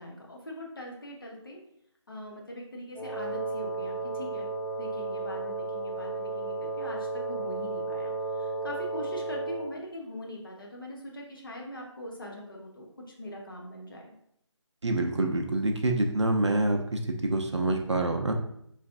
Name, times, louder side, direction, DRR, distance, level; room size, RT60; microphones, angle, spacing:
voice 1, 0.0-1.6 2.1-4.5 4.8-14.1, left 1 dB, 45° left, -1 dB, 0.7 m, -42 dB
Wind instrument woodwind instrument, 2.9-9.7, right 2 dB, 5° left, 0.7 m, -33 dB
voice 2, 14.8-18.3, right 2 dB, 65° right, 3 dB, 0.5 m, -26 dB
3.2 x 2.5 x 2.4 m, 0.73 s
figure-of-eight pair, 165°, 16 cm